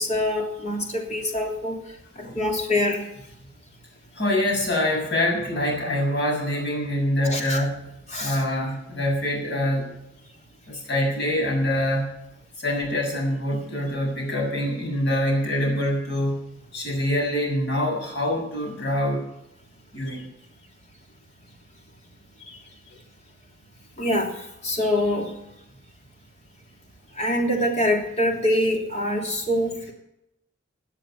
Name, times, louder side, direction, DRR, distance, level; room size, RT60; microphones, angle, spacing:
voice 1, 0.0-1.8 2.2-3.1 7.2-7.7 8.1-8.4 24.0-24.3 24.6-25.3 27.2-29.9, left 1 dB, 35° left, 1 dB, 3.3 m, -24 dB
voice 2, 4.1-7.8 8.2-9.9 10.7-12.1 12.6-16.4 16.7-19.2 19.9-20.2, left 1 dB, 60° left, -1 dB, 7.0 m, -25 dB
18.0 x 9.8 x 5.8 m, 0.84 s
head